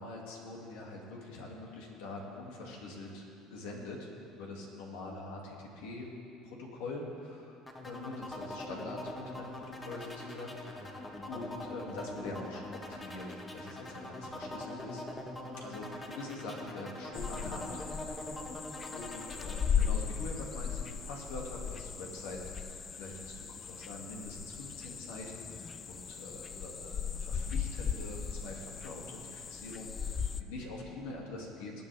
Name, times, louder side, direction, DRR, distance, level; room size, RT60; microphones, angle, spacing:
voice 1, 0.0-6.1 6.4-13.3 13.5-15.0 15.5-17.8 18.9-31.8, left 2 dB, 85° left, -1 dB, 2.4 m, -44 dB
sound 1, 7.7-19.7, left 1 dB, 20° left, 1.5 m, -43 dB
sound 2, 17.1-30.4, left 7 dB, 35° left, 0.5 m, -37 dB
20.0 x 9.0 x 3.5 m, 2.6 s
supercardioid pair, 100°, 0 cm